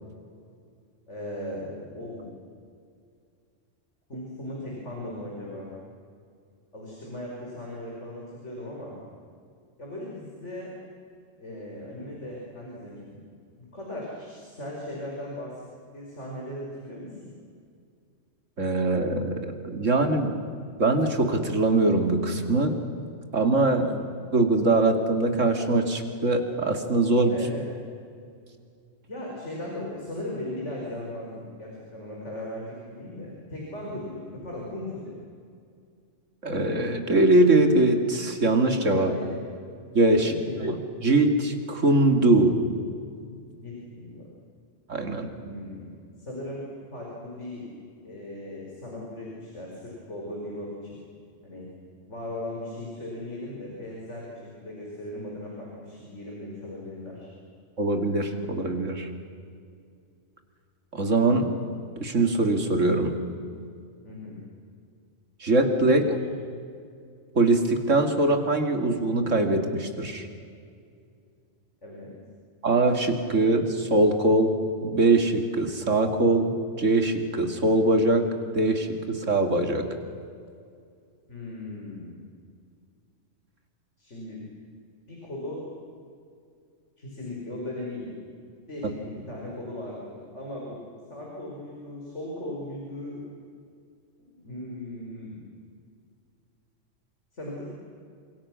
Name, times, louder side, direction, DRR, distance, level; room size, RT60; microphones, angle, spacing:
voice 1, 1.1-2.3 4.1-5.7 6.7-9.0 9.8-10.7 11.4-13.2 13.6-15.7 15.9-17.3 23.6-24.0 27.3-27.7 29.1-35.2 39.0-39.5 40.2-40.6 43.6-44.3 45.4-46.6 46.9-47.7 48.0-51.0 51.4-51.7 52.1-54.3 54.6-57.3 64.0-64.4 71.8-72.1 81.3-82.1 84.0-84.4 85.1-85.7 87.0-88.1 88.7-90.8 91.1-93.2 94.2-95.4 97.3-97.7, left 1 dB, 70° left, -3 dB, 5.6 m, -38 dB
voice 2, 18.6-20.3 20.8-22.8 23.3-23.9 24.3-27.4 36.4-39.1 39.9-42.6 44.9-45.3 57.8-59.1 60.9-61.5 62.0-63.1 65.4-66.2 67.3-70.3 72.6-74.5 74.8-76.5 76.8-78.3 78.5-79.9, right 2 dB, 90° right, 5 dB, 2.9 m, -22 dB
29.0 x 26.5 x 6.3 m, 2.3 s
omnidirectional pair, 1.3 m